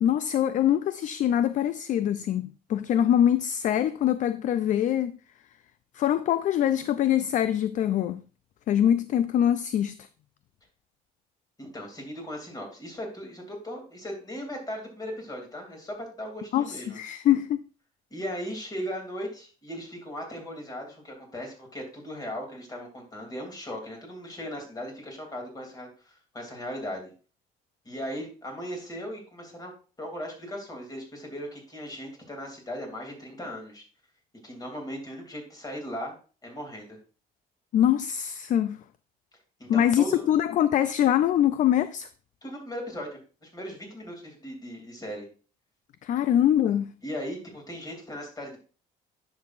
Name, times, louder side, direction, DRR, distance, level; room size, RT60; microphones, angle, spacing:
voice 1, 0.0-5.2 5.9-8.2 8.7-10.1 16.5-17.6 37.7-38.8 39.7-42.1 46.0-46.9, left 10 dB, 50° left, 0.4 m, -24 dB
voice 2, 11.6-17.0 18.1-27.1 27.8-29.7 30.0-33.8 34.4-36.1 36.4-37.0 39.6-40.3 42.4-45.3 47.0-48.6, equal, 20° left, 2.8 m, -38 dB
10.0 x 6.1 x 2.5 m
cardioid pair, 110°, 17 cm